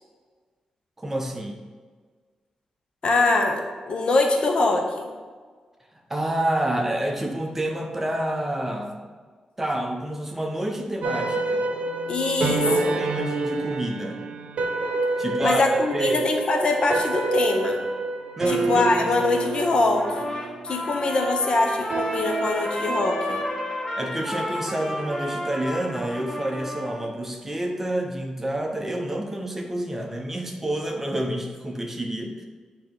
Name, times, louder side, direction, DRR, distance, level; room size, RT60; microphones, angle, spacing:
voice 1, 1.0-1.6 6.1-9.0 9.6-11.7 12.7-14.2 15.2-15.6 15.9-16.2 18.4-19.1 24.0-32.4, right 1 dB, 15° right, 2 dB, 0.7 m, -28 dB
voice 2, 3.0-5.1 12.1-13.0 15.4-17.8 18.5-20.3 20.6-23.4, left 3 dB, 50° left, 3 dB, 0.7 m, -23 dB
sound 1, 11.0-25.5, right 3 dB, 65° right, 0.8 m, -28 dB
Trumpet, 20.0-27.1, left 1 dB, 30° left, 1.2 m, -32 dB
8.6 x 2.9 x 3.8 m, 1.5 s
wide cardioid pair, 125°, 2 cm